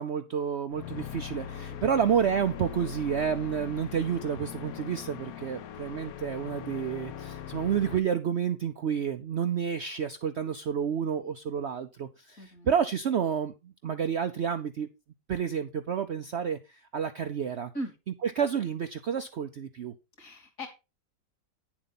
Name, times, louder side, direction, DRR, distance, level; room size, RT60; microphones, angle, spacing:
voice 1, 0.0-14.9 15.3-17.7 18.2-19.9, right 7 dB, 60° right, 9 dB, 0.7 m, -30 dB
sound 1, 0.7-8.0, left 9 dB, 65° left, 1.1 m, -41 dB
voice 2, 12.4-12.7 17.7-17.9 20.2-20.7, equal, 50° left, 3 dB, 3.1 m, -38 dB
9.9 x 7.3 x 4.0 m, 0.27 s
omnidirectional pair, 1.8 m